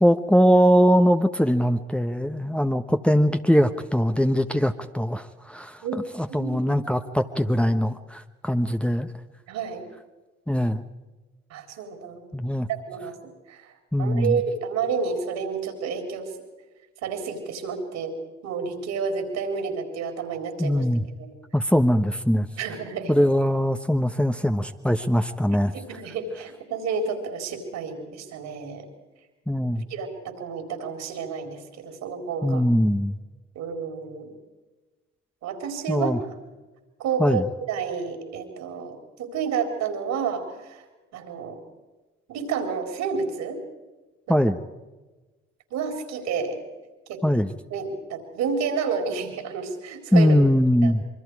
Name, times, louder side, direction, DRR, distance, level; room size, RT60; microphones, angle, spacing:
voice 1, 0.0-9.1 10.5-10.8 12.3-12.7 13.9-14.4 20.6-21.1 21.5-22.5 23.1-25.7 29.5-29.8 32.4-33.2 35.9-36.2 37.2-37.4 44.3-44.6 47.2-47.5 50.1-51.0, equal, 5° left, 7 dB, 1.2 m, -21 dB
voice 2, 6.4-6.8 9.5-9.8 11.5-12.3 12.7-13.2 13.5-13.7 14.0-16.3 17.0-18.2 18.4-20.8 21.2-21.3 22.6-23.2 25.7-28.9 29.9-32.6 33.5-34.3 35.4-36.4 37.0-37.4 37.7-40.8 41.1-41.6 42.3-43.6 44.3-44.4 45.7-46.6 47.1-47.2 47.7-50.4 50.8-50.9, right 5 dB, 65° right, 6 dB, 4.2 m, -30 dB
26.5 x 24.0 x 4.8 m, 1.2 s
hypercardioid pair, 50°, 29 cm